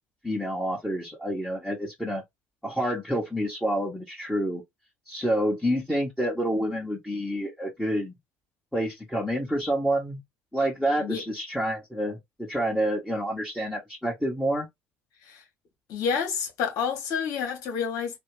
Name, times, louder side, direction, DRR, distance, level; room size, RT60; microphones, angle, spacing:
voice 1, 0.2-2.2 2.6-4.6 5.1-8.1 8.7-10.2 10.5-14.7, equal, 5° left, 1.6 m, -28 dB
voice 2, 15.9-18.2, left 6 dB, 60° left, 1.5 m, -29 dB
3.3 x 2.5 x 3.3 m
figure-of-eight pair, 55°, 7 cm